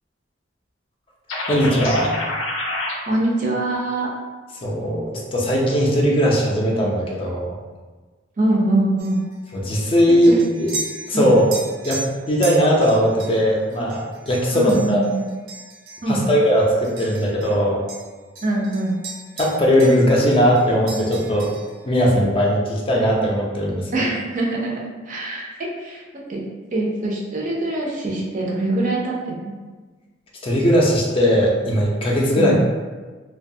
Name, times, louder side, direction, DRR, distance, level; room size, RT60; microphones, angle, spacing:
sound 1, 1.3-2.9, left 2 dB, 80° left, 0.5 m, -26 dB
voice 1, 1.5-2.1 4.6-7.5 9.5-10.7 11.1-11.5 11.8-15.0 16.1-17.8 19.4-21.5 21.8-23.9 30.4-32.6, equal, 30° left, -3 dB, 0.4 m, -18 dB
voice 2, 3.1-4.1 8.4-9.2 10.1-10.4 11.1-11.3 14.5-15.3 16.0-16.2 18.4-19.0 23.9-24.8 25.1-26.0 26.3-26.4 26.7-29.3 32.4-32.6, right 2 dB, 40° right, -2 dB, 0.5 m, -23 dB
sound 2, 9.0-17.6 17.9-20.1 20.3-21.8, right 2 dB, 90° right, 0.6 m, -36 dB
2.7 x 2.2 x 2.6 m, 1.3 s
head